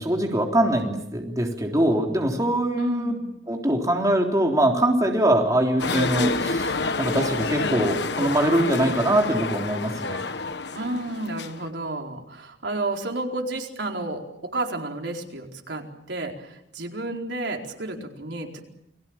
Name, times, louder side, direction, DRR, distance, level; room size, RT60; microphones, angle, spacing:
voice 1, 0.0-3.1 3.5-10.2, right 1 dB, 20° right, 1 dB, 3.5 m, -23 dB
voice 2, 2.8-3.2 10.7-18.6, right 2 dB, 80° right, 1 dB, 4.5 m, -31 dB
sound 1, 5.8-11.7, left 3 dB, 70° left, 1.4 m, -28 dB
29.5 x 21.5 x 7.3 m, 0.82 s
head